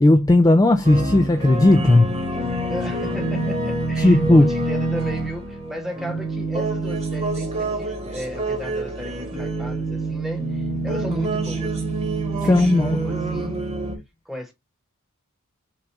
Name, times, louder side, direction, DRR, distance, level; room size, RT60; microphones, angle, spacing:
voice 1, 0.0-2.2 4.0-4.5 12.4-13.0, left 2 dB, 15° left, 0.3 m, -15 dB
sound 1, 0.8-14.0, right 2 dB, 30° right, 1.2 m, -26 dB
voice 2, 2.6-11.8 12.4-13.6 14.2-14.5, equal, ahead, 1.1 m, -35 dB
5.9 x 2.5 x 3.3 m
head